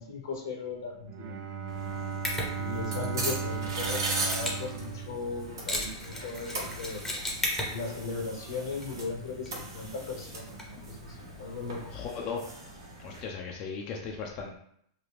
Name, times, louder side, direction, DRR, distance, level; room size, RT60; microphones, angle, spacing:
voice 1, 0.0-1.3 2.6-7.0 7.6-11.8, left 4 dB, 75° left, 1 dB, 1.0 m, -37 dB
Bowed string instrument, 1.0-5.9, right 6 dB, 45° right, 0.5 m, -36 dB
sound 1, 1.7-13.2, right 2 dB, 85° right, 1.0 m, -39 dB
Mechanisms, 2.2-12.1, left 1 dB, 10° left, 0.8 m, -39 dB
voice 2, 11.9-12.4 13.0-14.6, left 5 dB, 40° left, 0 dB, 0.5 m, -37 dB
3.1 x 2.2 x 3.4 m, 0.69 s
hypercardioid pair, 120°, 2 cm